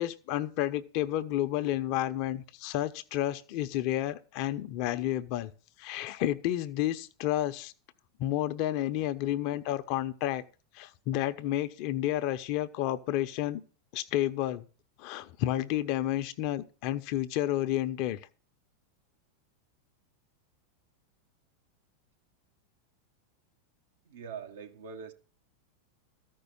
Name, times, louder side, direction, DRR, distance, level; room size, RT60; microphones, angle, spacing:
voice 1, 0.0-5.5 5.8-7.7 8.2-10.4 10.7-13.6 13.9-14.6 15.0-18.2, left 13 dB, 55° left, 0.9 m, -31 dB
voice 2, 24.0-25.1, right 6 dB, 75° right, 1.5 m, -43 dB
13.5 x 5.5 x 7.0 m
hypercardioid pair, 95°, 0 cm